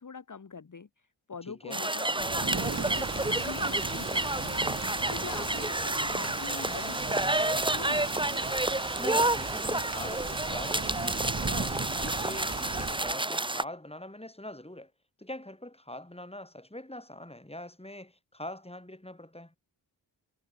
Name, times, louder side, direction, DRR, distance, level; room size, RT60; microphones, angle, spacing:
voice 1, 0.0-8.2, left 5 dB, 40° left, 1.6 m, -44 dB
voice 2, 1.4-1.8 5.2-5.5 9.0-14.9 15.2-19.6, left 1 dB, 10° left, 5.3 m, -43 dB
sound 1, 1.7-13.6, right 2 dB, 10° right, 1.0 m, -30 dB
Thunder / Rain, 2.1-13.2, right 4 dB, 35° right, 2.1 m, -38 dB
sound 2, 3.2-11.6, right 6 dB, 70° right, 3.8 m, -59 dB
cardioid pair, 40°, 47 cm